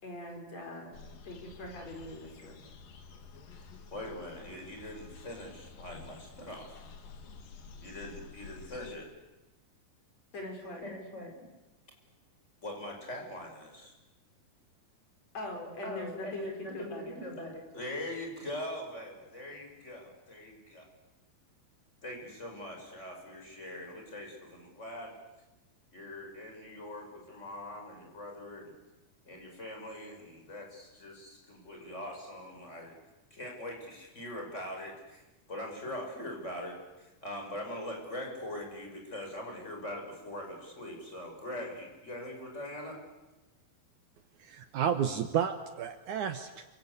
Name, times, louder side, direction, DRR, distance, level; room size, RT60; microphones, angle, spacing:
voice 1, 0.0-2.6 10.3-10.8 15.3-17.2, left 2 dB, 45° left, 2 dB, 5.8 m, -42 dB
sound 1, 0.9-9.0, left 5 dB, 70° left, 3.7 m, -51 dB
voice 2, 3.9-6.7 7.8-9.1 10.8-11.3 12.6-13.9 15.8-20.9 22.0-25.1 25.9-28.7 29.3-32.9 33.3-35.2 35.5-43.0, left 1 dB, 20° left, 1 dB, 6.3 m, -42 dB
voice 3, 44.4-46.7, right 8 dB, 65° right, 9 dB, 2.3 m, -31 dB
28.5 x 26.0 x 8.2 m, 1.1 s
omnidirectional pair, 4.1 m